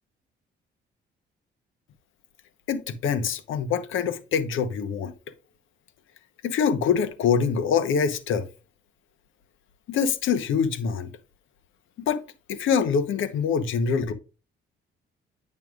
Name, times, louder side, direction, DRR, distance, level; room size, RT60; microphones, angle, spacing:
voice 1, 2.7-5.1 6.4-8.5 9.9-11.1 12.1-12.2 12.5-14.1, left 6 dB, 80° left, 1.0 m, -24 dB
9.2 x 5.6 x 2.4 m
cardioid pair, 90°, 20 cm